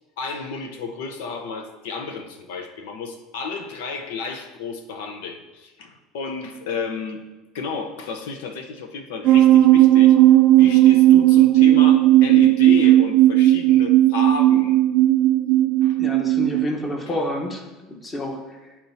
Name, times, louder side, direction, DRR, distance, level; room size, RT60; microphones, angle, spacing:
voice 1, 0.2-7.2 7.5-10.2 10.6-14.8 15.8-16.0, left 4 dB, 90° left, 6 dB, 0.7 m, -32 dB
sound 1, 9.2-16.7, right 14 dB, 60° right, 0.4 m, -15 dB
voice 2, 16.0-17.7 18.0-18.6, left 1 dB, 20° left, 2 dB, 1.1 m, -28 dB
10.5 x 4.4 x 2.7 m, 1.2 s
supercardioid pair, 130°, 0 cm